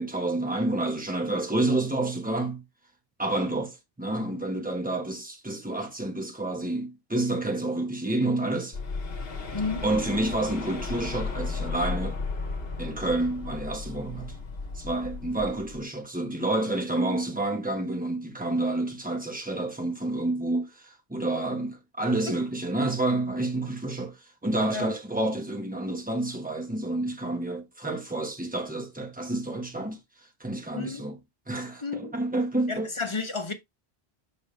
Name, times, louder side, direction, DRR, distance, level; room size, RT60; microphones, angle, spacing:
voice 1, 0.0-2.6 3.2-8.8 9.8-12.2 12.8-14.4 14.7-30.0 30.4-31.2 31.5-32.9, right 2 dB, 10° right, 1.3 m, -29 dB
sound 1, 8.7-15.8, left 4 dB, 65° left, 1.3 m, -34 dB
voice 2, 9.5-9.8 22.3-22.4 24.7-24.9 30.7-31.0 31.8-32.1 32.7-33.5, left 4 dB, 30° left, 1.0 m, -31 dB
5.9 x 5.2 x 3.3 m
omnidirectional pair, 1.1 m